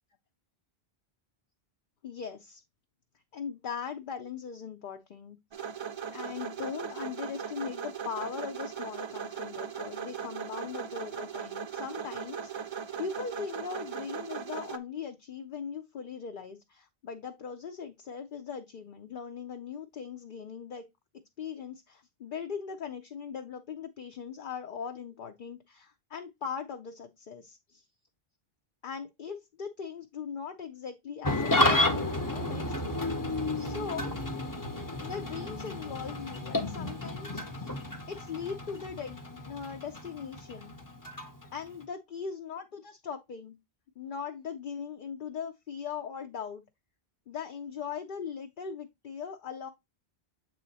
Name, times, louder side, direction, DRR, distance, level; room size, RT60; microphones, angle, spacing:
voice 1, 2.0-2.6 3.3-5.4 6.1-20.9 21.4-27.8 28.8-32.0 32.3-32.6 33.0-33.1 33.6-34.1 35.0-37.7 38.1-40.8 41.5-43.6 44.0-46.6 47.3-49.7, left 6 dB, 60° left, 0.8 m, -40 dB
sound 1, 5.5-14.8, right 7 dB, 50° right, 0.3 m, -38 dB
Engine starting / Idling, 31.2-41.8, left 1 dB, 20° left, 0.8 m, -32 dB
7.7 x 3.2 x 4.0 m
omnidirectional pair, 1.0 m